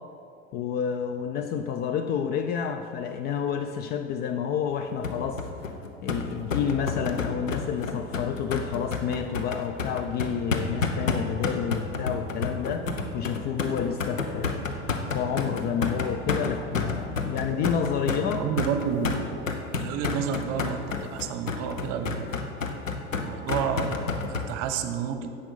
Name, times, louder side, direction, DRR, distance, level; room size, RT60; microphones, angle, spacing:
voice 1, 0.5-5.4 6.0-18.4, left 7 dB, 25° left, 7 dB, 0.4 m, -29 dB
sound 1, 5.0-24.5, left 4 dB, 80° left, 0.9 m, -30 dB
voice 2, 18.2-19.2 19.7-22.3 23.1-25.3, right 7 dB, 40° right, 8 dB, 1.0 m, -30 dB
10.5 x 7.6 x 5.5 m, 2.6 s
figure-of-eight pair, 80°, 38 cm